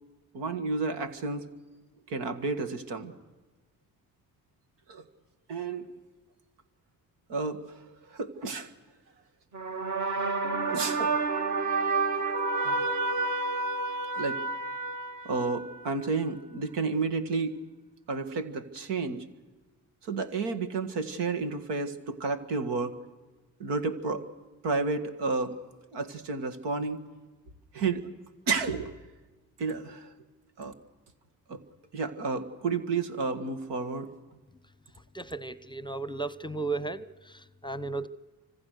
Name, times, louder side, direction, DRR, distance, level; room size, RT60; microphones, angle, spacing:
voice 1, 0.3-1.5 2.1-3.1 4.9-5.0 5.5-5.9 7.3-7.8 8.1-8.7 10.6-11.2 12.6-12.8 14.1-14.4 15.3-17.6 18.1-19.3 20.0-23.0 23.6-24.2 24.6-25.6 25.9-27.0 27.7-28.1 28.5-28.9 29.6-30.1 30.6-30.7 31.5-31.6 31.9-34.1, right 4 dB, 75° right, 7 dB, 1.9 m, -31 dB
sound 1, 9.5-15.9, right 3 dB, 45° right, 2.3 m, -30 dB
voice 2, 35.1-38.1, right 3 dB, 10° left, 17 dB, 0.9 m, -35 dB
29.5 x 25.5 x 6.6 m, 1.2 s
hypercardioid pair, 50°, 41 cm